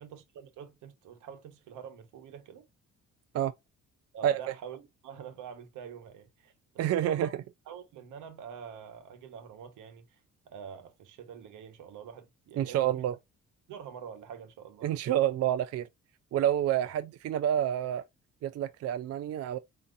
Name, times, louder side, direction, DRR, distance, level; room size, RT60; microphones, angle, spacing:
voice 1, 0.0-2.7 4.1-6.5 7.0-7.4 7.7-10.2 10.5-13.0 13.7-14.9 16.8-16.9, right 7 dB, 85° right, 1.2 m, -46 dB
voice 2, 6.8-7.3 12.6-13.2 14.8-15.9 16.3-18.0 18.4-19.6, right 11 dB, 55° right, 0.4 m, -28 dB
4.9 x 2.8 x 2.5 m
cardioid pair, 90°, 30 cm